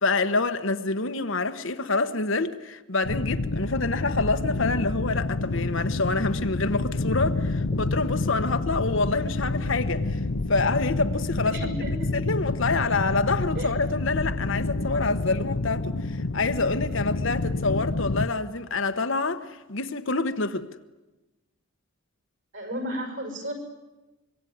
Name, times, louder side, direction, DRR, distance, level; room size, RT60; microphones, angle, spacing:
voice 1, 0.0-10.2 10.5-11.6 11.9-20.7, left 3 dB, 60° left, 1.2 m, -27 dB
sound 1, 3.0-18.3, left 2 dB, 85° left, 1.0 m, -28 dB
voice 2, 11.5-12.1 13.6-13.7 22.5-23.5, equal, 60° right, 5.8 m, -33 dB
25.0 x 23.5 x 9.5 m
head